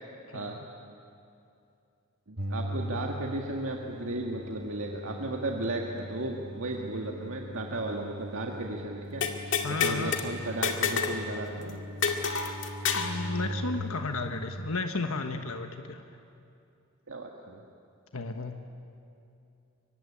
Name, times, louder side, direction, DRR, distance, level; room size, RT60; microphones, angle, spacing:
voice 1, 0.3-0.6 9.6-10.3 12.9-16.2 18.1-18.6, left 3 dB, 85° left, 6 dB, 1.3 m, -34 dB
voice 2, 2.3-9.2 9.8-11.8 17.1-17.6, right 2 dB, 75° right, 1 dB, 1.8 m, -35 dB
sound 1, 2.4-13.8, equal, 55° right, 2.0 m, -40 dB
sound 2, 9.2-10.2 10.6-11.2 11.5-11.6 12.0-13.2, left 6 dB, 60° left, 2.1 m, -28 dB
24.0 x 24.0 x 10.0 m, 2.6 s
head